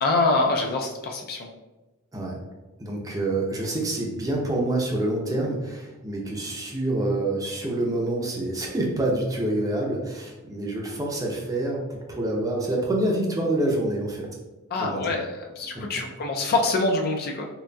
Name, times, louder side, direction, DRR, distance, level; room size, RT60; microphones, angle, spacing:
voice 1, 0.0-1.5 14.7-17.5, left 3 dB, 45° left, 2 dB, 0.4 m, -25 dB
voice 2, 2.8-14.3 14.8-15.1 15.7-15.8, right 1 dB, 15° right, -1 dB, 0.6 m, -27 dB
3.9 x 3.5 x 2.2 m, 1.1 s
head